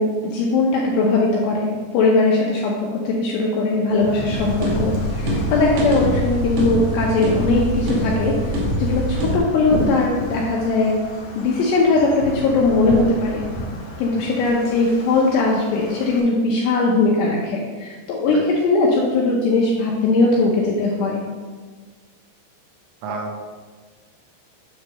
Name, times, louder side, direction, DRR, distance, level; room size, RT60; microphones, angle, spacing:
voice 1, 0.0-8.4 8.8-11.0 11.4-13.4 14.0-21.2, left 3 dB, 80° left, -2 dB, 2.5 m, -19 dB
Wind, 3.9-16.2, left 1 dB, 65° left, 2.2 m, -32 dB
sound 1, 4.3-9.4, equal, 65° right, 2.8 m, -24 dB
voice 2, 14.1-14.4 18.3-18.4 23.0-23.4, right 3 dB, 85° right, 2 dB, 3.4 m, -31 dB
9.3 x 3.1 x 6.2 m, 1.5 s
omnidirectional pair, 5.8 m